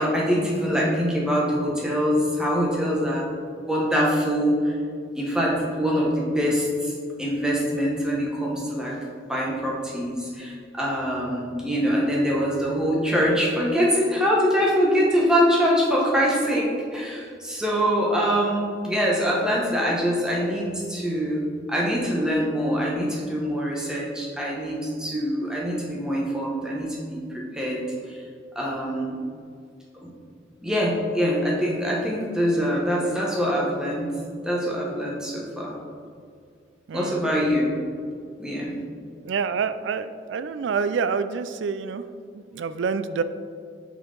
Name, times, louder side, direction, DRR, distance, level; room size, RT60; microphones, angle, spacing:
voice 1, 0.0-3.2 3.5-4.7 5.2-6.9 7.2-9.0 9.3-21.4 21.7-28.2 28.5-29.2 30.0-30.1 30.6-34.1 34.4-35.7 36.9-37.7 38.4-38.7, equal, 5° right, -4 dB, 1.1 m, -24 dB
voice 2, 36.9-37.2 39.2-42.0 42.3-43.2, right 5 dB, 85° right, 12 dB, 0.4 m, -27 dB
8.0 x 4.4 x 3.9 m, 2.2 s
head